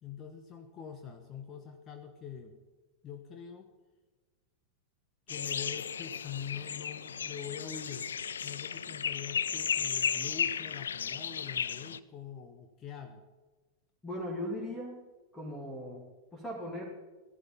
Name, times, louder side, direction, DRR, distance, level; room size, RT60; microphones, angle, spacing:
voice 1, 0.0-2.6 3.0-3.7 5.3-8.1 8.4-13.2, left 7 dB, 30° left, 5 dB, 1.3 m, -44 dB
sound 1, 5.3-12.0, left 7 dB, 70° left, 0.4 m, -34 dB
voice 2, 14.0-15.0 15.3-16.0 16.3-16.9, left 1 dB, 10° left, -3 dB, 2.9 m, -38 dB
14.5 x 12.0 x 5.6 m, 1.2 s
figure-of-eight pair, 90°, 0 cm